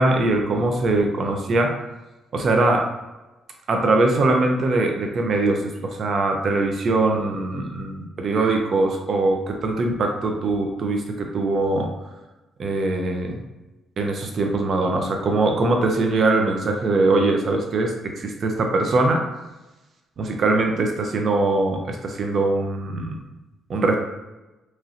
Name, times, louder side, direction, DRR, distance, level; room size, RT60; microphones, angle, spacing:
voice 1, 0.0-1.7 2.3-2.9 3.7-11.9 12.6-13.4 14.0-19.3 20.2-23.2 23.7-24.0, right 2 dB, 55° right, 3 dB, 0.4 m, -22 dB
3.0 x 2.7 x 2.5 m, 1.1 s
cardioid pair, 90°, 0 cm